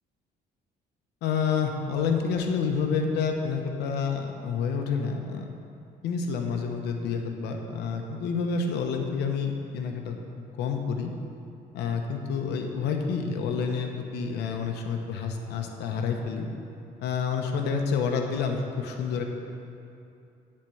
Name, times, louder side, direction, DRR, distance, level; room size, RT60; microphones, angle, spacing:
voice 1, 1.2-5.5 6.0-10.2 10.6-11.1 11.7-16.5 17.0-19.2, left 5 dB, 80° left, 3 dB, 0.9 m, -28 dB
11.5 x 4.4 x 7.6 m, 2.6 s
cardioid pair, 110°, 17 cm